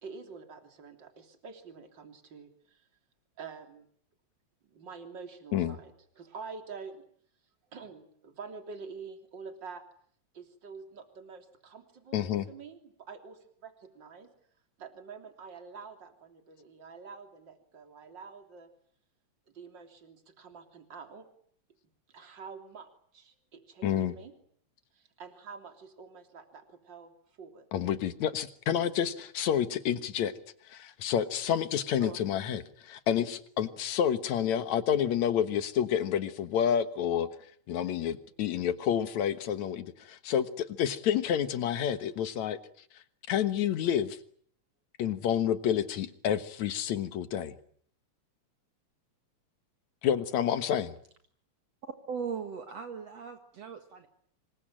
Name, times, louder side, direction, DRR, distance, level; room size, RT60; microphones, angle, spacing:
voice 1, 0.0-2.8 3.4-3.9 4.7-7.0 7.7-9.8 10.3-14.3 14.8-18.7 19.5-21.3 22.1-24.3 24.9-27.1 27.4-27.7 32.0-32.3, right 5 dB, 40° right, 6 dB, 3.8 m, -47 dB
voice 2, 12.1-12.5 23.8-24.2 27.7-30.3 30.7-37.3 37.7-42.6 43.3-44.2 45.0-47.5 50.0-51.0, left 9 dB, 75° left, 11 dB, 2.7 m, -29 dB
voice 3, 51.8-54.1, right 6 dB, 60° right, 6 dB, 2.8 m, -39 dB
26.5 x 23.0 x 8.9 m, 0.62 s
omnidirectional pair, 3.3 m